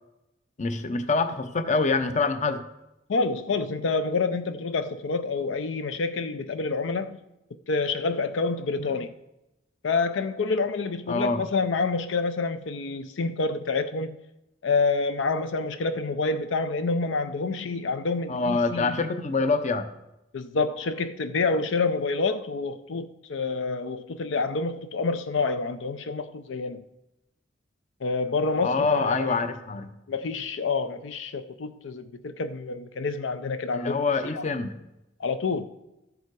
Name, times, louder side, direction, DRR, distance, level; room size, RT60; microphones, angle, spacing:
voice 1, 0.6-2.6 8.8-9.0 11.1-11.4 18.3-19.9 28.6-29.9 33.7-34.8, left 3 dB, 40° left, 0.7 m, -25 dB
voice 2, 3.1-7.2 7.7-9.1 9.8-14.2 14.6-19.0 20.3-26.8 28.0-29.4 30.1-34.0 34.4-34.5 35.2-35.7, left 4 dB, 80° left, 0.5 m, -28 dB
13.0 x 7.1 x 4.7 m
head